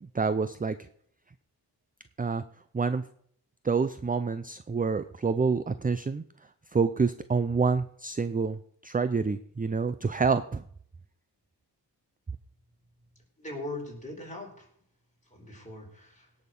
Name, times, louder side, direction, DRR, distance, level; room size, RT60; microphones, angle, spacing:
voice 1, 0.1-0.9 2.2-2.4 2.7-3.0 3.6-6.2 6.7-10.6, right 4 dB, 20° right, 13 dB, 0.5 m, -27 dB
voice 2, 13.4-14.7 15.3-16.3, left 2 dB, 15° left, -1 dB, 4.5 m, -40 dB
17.5 x 6.5 x 5.4 m, 0.63 s
wide cardioid pair, 75°, 42 cm